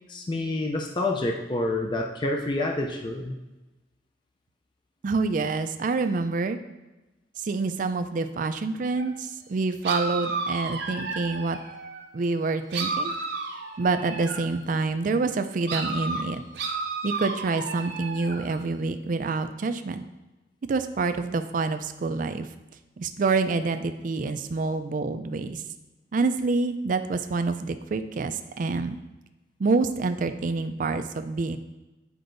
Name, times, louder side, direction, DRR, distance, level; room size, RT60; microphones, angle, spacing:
voice 1, 0.1-3.3, left 2 dB, 25° left, 1 dB, 0.4 m, -28 dB
voice 2, 5.0-6.6 7.4-11.6 12.1-13.1 13.8-16.4 17.0-20.0 20.7-22.5 23.0-25.6 26.1-29.0 29.6-31.6, right 3 dB, 50° right, 9 dB, 0.4 m, -27 dB
sound 1, 8.9-9.1 9.8-12.1 12.7-14.6 15.7-18.6, right 3 dB, 70° right, 0.7 m, -32 dB
9.4 x 4.5 x 2.6 m, 1.1 s
head